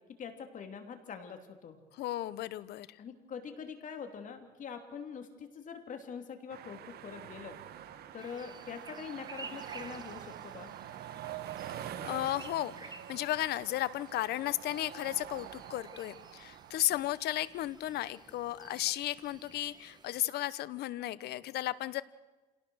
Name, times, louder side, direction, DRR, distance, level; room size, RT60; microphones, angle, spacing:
voice 1, 0.2-1.8 3.0-7.6 8.1-10.7, left 6 dB, 50° left, 6 dB, 3.1 m, -44 dB
voice 2, 2.0-3.0 11.7-22.0, left 14 dB, 75° left, 17 dB, 0.9 m, -34 dB
sound 1, 6.5-16.8, right 10 dB, 70° right, 1.6 m, -45 dB
sound 2, 8.2-20.2, right 4 dB, 25° right, 1.8 m, -54 dB
27.5 x 18.0 x 6.4 m, 1.2 s
cardioid pair, 110°, 17 cm